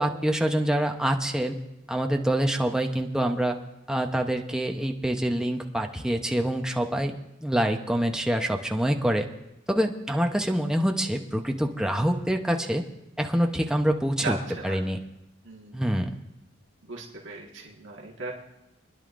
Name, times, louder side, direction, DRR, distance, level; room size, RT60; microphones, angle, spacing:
voice 1, 0.0-1.6 1.9-3.6 3.9-7.2 7.4-9.3 9.7-12.8 13.2-14.4 14.6-15.0 15.7-16.1, right 1 dB, 5° right, 3 dB, 0.7 m, -26 dB
voice 2, 14.2-14.8 15.4-15.8 16.8-18.3, right 3 dB, 65° right, -2 dB, 1.6 m, -37 dB
28.0 x 10.5 x 2.5 m, 0.91 s
head